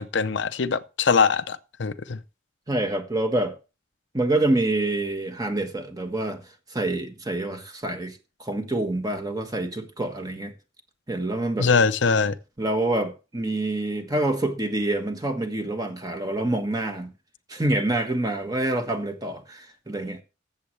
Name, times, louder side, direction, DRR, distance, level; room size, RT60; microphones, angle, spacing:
voice 1, 0.0-2.2 11.6-12.4, left 5 dB, 70° left, 0.6 m, -22 dB
voice 2, 2.7-3.5 4.1-6.4 6.7-10.5 11.1-11.7 12.6-17.1 17.5-20.2, right 2 dB, 20° right, 1.3 m, -26 dB
15.0 x 7.5 x 3.2 m
head